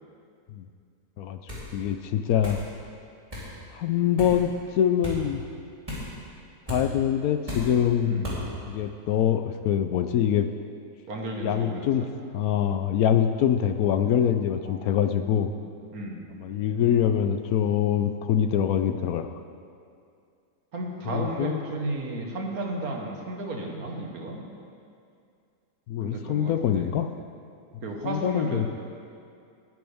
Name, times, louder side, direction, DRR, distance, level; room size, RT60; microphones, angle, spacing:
sound 1, 1.5-1.7 2.4-2.7 3.3-3.5 4.2-4.4 5.0-5.2 5.9-6.1 6.7-6.8 7.5-7.7 8.2-8.4, left 1 dB, 20° right, 3.3 m, -34 dB
voice 1, 1.7-2.6 3.7-5.4 6.7-8.2 8.7-10.5 11.4-12.1 12.3-15.5 16.4-19.3 21.1-21.6 25.9-27.1 28.0-28.7, left 9 dB, 70° left, 9 dB, 1.0 m, -24 dB
voice 2, 11.1-12.1 14.7-15.6 15.9-16.3 20.7-24.4 26.0-26.9 27.8-28.7, right 2 dB, 65° right, 0 dB, 1.9 m, -34 dB
19.0 x 9.4 x 3.5 m, 2.4 s
omnidirectional pair, 1.7 m